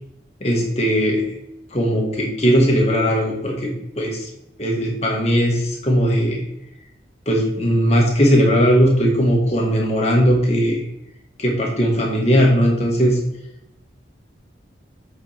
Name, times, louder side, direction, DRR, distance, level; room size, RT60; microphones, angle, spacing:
voice 1, 0.4-1.2 1.7-4.3 4.6-6.4 7.3-10.8 11.4-13.2, equal, 35° left, -1 dB, 1.5 m, -18 dB
8.1 x 4.5 x 3.4 m, 0.82 s
head